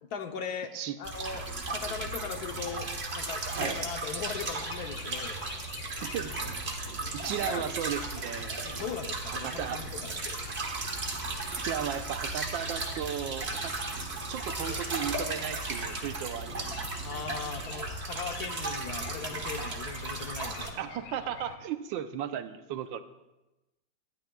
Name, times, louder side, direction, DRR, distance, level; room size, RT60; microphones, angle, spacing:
voice 1, 0.0-0.7 1.0-5.4 7.2-7.7 8.7-10.4 17.0-20.9, left 7 dB, 65° left, 6 dB, 1.2 m, -39 dB
sound 1, 1.0-20.7, right 3 dB, 35° right, 1.5 m, -35 dB
sound 2, 4.4-21.6, left 6 dB, 85° left, 1.6 m, -50 dB
voice 2, 5.8-6.5 7.1-8.6 9.3-9.8 11.6-13.7 14.3-16.7 20.8-23.0, right 9 dB, 90° right, 9 dB, 1.5 m, -35 dB
sound 3, 12.4-17.9, left 2 dB, 25° left, 2.9 m, -52 dB
19.5 x 12.5 x 2.3 m, 1.0 s
omnidirectional pair, 2.0 m